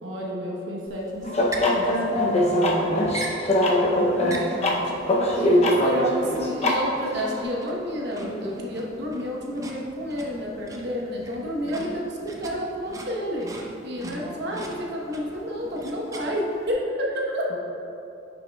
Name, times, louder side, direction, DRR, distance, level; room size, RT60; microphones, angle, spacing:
voice 1, 0.0-3.1 3.9-4.4 4.7-5.7 11.6-11.9 14.0-14.6 17.5-17.6, equal, 85° right, -3 dB, 1.1 m, -35 dB
sound 1, 0.9-16.7, right 2 dB, 15° right, 0.5 m, -42 dB
sound 2, 1.2-7.4, left 1 dB, 35° left, 0.6 m, -22 dB
voice 2, 3.6-4.8 5.4-13.5 13.8-17.6, equal, 60° right, -3 dB, 1.1 m, -30 dB
10.0 x 5.7 x 2.3 m, 2.9 s
head